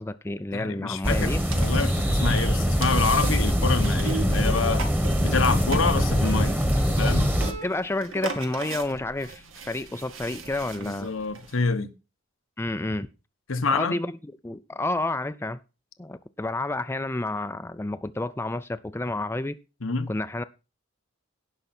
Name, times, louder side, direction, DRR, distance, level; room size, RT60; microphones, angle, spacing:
voice 1, 0.0-1.4 7.6-11.1 12.6-13.1 13.7-15.6 16.0-19.6 20.1-20.4, left 2 dB, 10° left, 0.4 m, -30 dB
voice 2, 0.5-4.9 5.2-6.6 6.9-7.4 10.7-11.9 13.5-14.0 19.8-20.1, left 4 dB, 90° left, 1.1 m, -27 dB
sound 1, 1.0-7.5, equal, 10° right, 1.3 m, -23 dB
sound 2, 1.5-11.6, right 4 dB, 85° right, 1.8 m, -39 dB
17.0 x 5.8 x 4.3 m
head